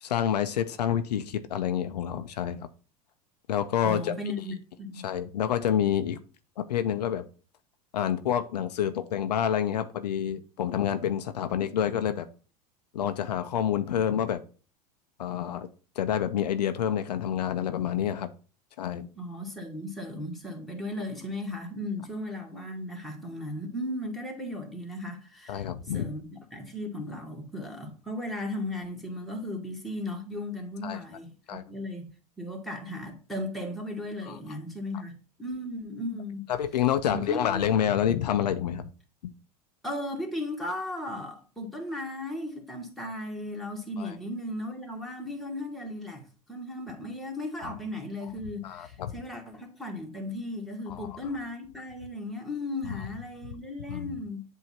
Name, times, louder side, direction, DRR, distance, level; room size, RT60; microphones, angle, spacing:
voice 1, 0.0-2.7 3.5-4.1 5.0-6.2 6.6-7.3 7.9-12.3 12.9-14.4 15.2-15.7 16.0-18.3 18.8-19.1 25.5-26.1 30.8-31.0 31.5-31.6 34.2-34.4 36.5-38.9 44.0-44.1 48.6-49.1 50.9-51.2 52.8-53.0 53.9-54.1, left 9 dB, 80° left, 0.6 m, -28 dB
voice 2, 3.8-5.1 19.2-25.6 25.9-32.1 32.4-36.4 37.1-37.7 39.8-54.4, left 1 dB, ahead, 1.9 m, -36 dB
7.8 x 2.8 x 5.6 m
hypercardioid pair, 85°, 20 cm